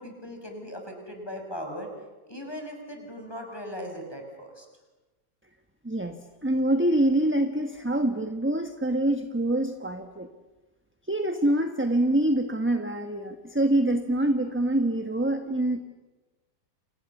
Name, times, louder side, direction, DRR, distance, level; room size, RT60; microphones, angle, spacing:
voice 1, 0.0-1.9 2.3-4.7, equal, 15° left, 3 dB, 5.8 m, -38 dB
voice 2, 5.8-6.2 6.4-10.3 11.1-15.8, right 1 dB, 10° right, 6 dB, 1.1 m, -25 dB
29.5 x 27.0 x 7.2 m, 1.2 s
omnidirectional pair, 1.8 m